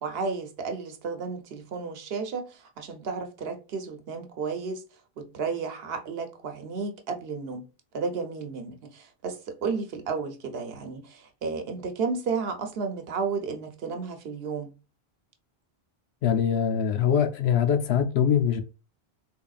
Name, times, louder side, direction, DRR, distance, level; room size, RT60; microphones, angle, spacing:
voice 1, 0.0-4.8 5.2-7.7 7.9-14.7, right 5 dB, 70° right, 0.9 m, -33 dB
voice 2, 16.2-18.6, left 8 dB, 85° left, 0.9 m, -23 dB
3.6 x 3.4 x 2.3 m
omnidirectional pair, 1.1 m